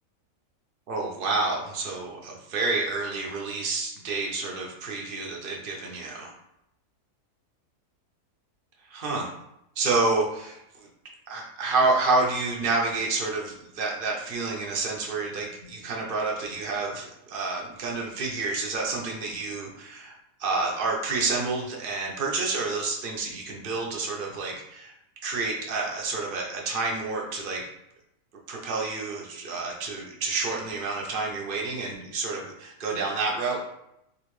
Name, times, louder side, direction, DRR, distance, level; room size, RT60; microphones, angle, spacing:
voice 1, 0.9-6.3 8.9-9.3 9.8-10.6 11.3-24.9 25.2-27.7 28.5-33.6, right 3 dB, 70° right, -1 dB, 0.5 m, -29 dB
3.8 x 2.5 x 3.1 m, 0.83 s
omnidirectional pair, 1.7 m